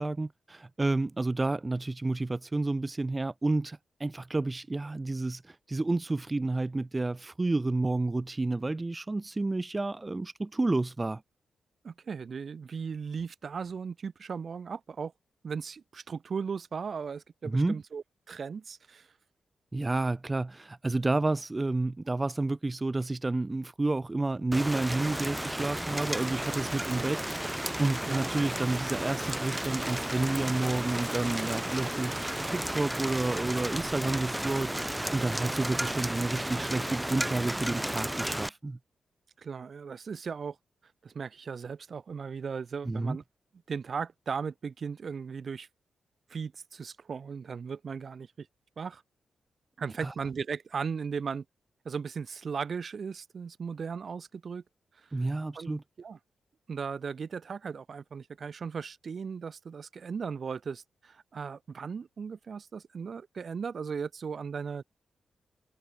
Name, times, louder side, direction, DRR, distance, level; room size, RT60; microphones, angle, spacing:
voice 1, 0.0-11.2 17.4-17.8 19.7-38.8 42.8-43.2 50.0-50.1 55.1-55.8, right 2 dB, 25° right, 0.9 m, -30 dB
voice 2, 11.8-15.1 15.4-19.1 26.9-27.1 28.0-28.4 39.4-40.6 41.0-43.2 43.7-45.7 46.3-48.5 48.8-49.0 49.8-51.4 51.8-54.6 55.0-55.1 55.5-55.7 56.0-56.2 56.7-64.8, right 6 dB, 60° right, 3.2 m, -37 dB
Rain, 24.5-38.5, right 1 dB, 10° right, 4.5 m, -33 dB
cardioid pair, 60°, 0 cm